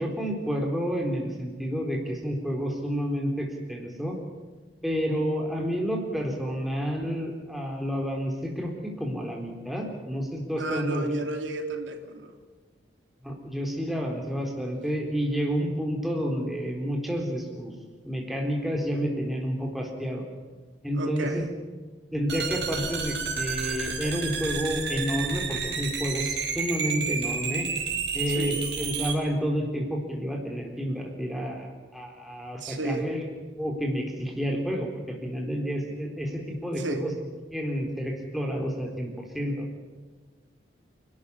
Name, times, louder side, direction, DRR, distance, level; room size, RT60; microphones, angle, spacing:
voice 1, 0.0-4.2 4.8-11.1 13.2-17.7 18.1-20.2 20.8-21.4 22.1-27.7 28.1-33.2 33.6-37.1 37.5-39.7, equal, ahead, 1 dB, 4.0 m, -30 dB
voice 2, 10.6-12.4 20.9-21.4 28.3-28.6 32.6-33.1 36.8-37.0, right 2 dB, 85° right, 4 dB, 3.0 m, -32 dB
sound 1, 22.3-29.2, right 5 dB, 60° right, 4.4 m, -31 dB
28.5 x 13.0 x 9.9 m, 1.4 s
head